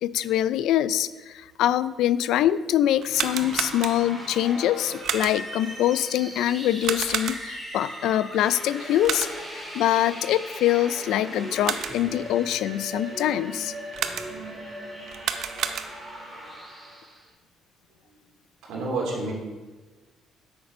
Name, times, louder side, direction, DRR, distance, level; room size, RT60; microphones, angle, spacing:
voice 1, 0.0-9.3 9.5-13.7, left 12 dB, 75° left, 16 dB, 0.3 m, -24 dB
sound 1, 3.0-4.3 5.0-5.6 6.8-7.7 9.0-9.6 11.4-12.2 13.9-14.6 15.1-16.2, right 8 dB, 55° right, 0.6 m, -31 dB
sound 2, 3.1-17.2, equal, ahead, 2.1 m, -38 dB
voice 2, 18.7-19.3, right 2 dB, 75° right, -3 dB, 2.9 m, -30 dB
8.5 x 6.8 x 5.2 m, 1.3 s
cardioid pair, 175°, 0 cm